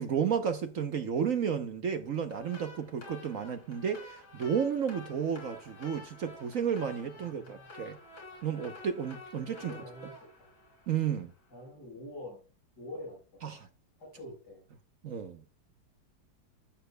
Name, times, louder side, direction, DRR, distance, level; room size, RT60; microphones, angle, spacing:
voice 1, 0.0-8.0 8.4-9.7 10.9-11.3 13.4-13.7 15.0-15.4, right 7 dB, 55° right, 1.0 m, -32 dB
sound 1, 2.3-11.4, left 2 dB, 85° left, 4.0 m, -50 dB
voice 2, 7.1-7.7 9.5-10.1 10.4-10.5 11.5-12.4 12.7-13.4 14.0-14.6, left 1 dB, 55° left, 4.9 m, -46 dB
16.0 x 7.0 x 2.2 m
omnidirectional pair, 2.1 m